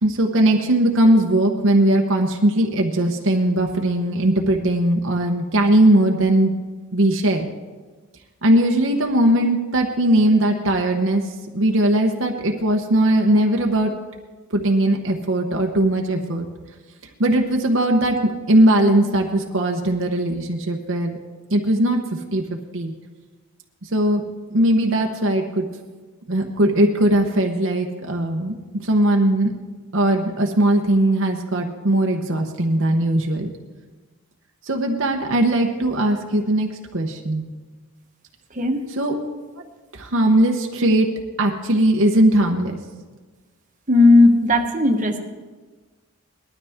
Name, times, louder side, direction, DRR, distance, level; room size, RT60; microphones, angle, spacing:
voice 1, 0.0-6.5 6.9-7.5 8.4-11.2 11.5-13.9 14.5-16.5 17.2-21.2 21.5-22.0 22.3-22.4 22.7-22.9 23.8-24.2 24.5-25.6 26.3-29.5 29.9-33.5 34.7-37.4 38.9-39.1 39.9-41.1 41.4-42.8, right 1 dB, 60° right, 2 dB, 1.0 m, -19 dB
voice 2, 38.5-38.9 43.9-45.2, left 2 dB, 35° right, 2 dB, 1.2 m, -15 dB
20.0 x 12.5 x 3.6 m, 1.3 s
head